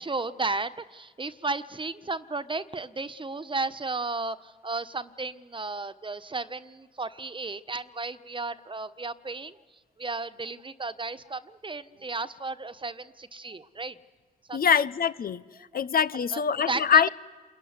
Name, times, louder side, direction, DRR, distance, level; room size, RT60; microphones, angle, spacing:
voice 1, 0.0-9.6 10.0-14.0 14.5-14.6 15.7-15.8 16.3-16.4 16.7-17.1, right 3 dB, 30° right, 12 dB, 1.4 m, -34 dB
voice 2, 14.5-15.4 15.7-17.1, left 7 dB, 55° left, 15 dB, 1.0 m, -23 dB
27.5 x 22.0 x 9.8 m, 1.3 s
supercardioid pair, 50°, 18 cm